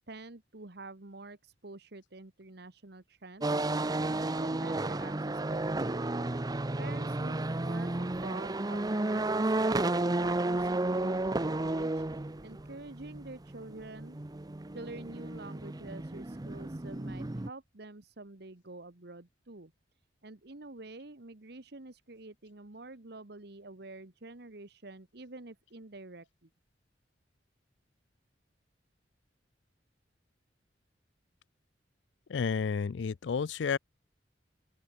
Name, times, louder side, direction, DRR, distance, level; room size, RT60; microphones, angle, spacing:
voice 1, 0.1-6.4 6.8-14.2 14.7-19.7 20.2-26.5, right 2 dB, 60° right, 1.5 m, -48 dB
sound 1, 3.4-17.5, right 2 dB, 20° right, 0.7 m, -32 dB
voice 2, 32.3-33.8, left 5 dB, 75° left, 0.4 m, -31 dB
open air
head